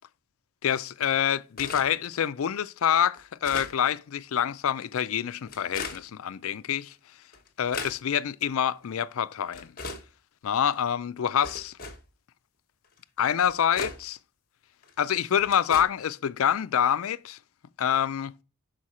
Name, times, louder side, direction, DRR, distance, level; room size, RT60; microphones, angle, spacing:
voice 1, 0.6-6.9 7.6-9.7 10.4-11.7 13.2-14.2 15.0-17.4 17.8-18.3, left 9 dB, 70° left, 0.4 m, -26 dB
sound 1, 1.6-1.9 2.5-2.6 3.1-3.7 4.7-4.8 5.5-6.0 6.9-7.0 7.3-8.0 8.8-8.9 9.5-10.0 10.7-10.8 11.4-12.0 13.0-13.1 13.4-14.0 14.8-14.9 15.4-15.8, left 4 dB, 40° left, 1.1 m, -37 dB
6.4 x 4.5 x 4.2 m
head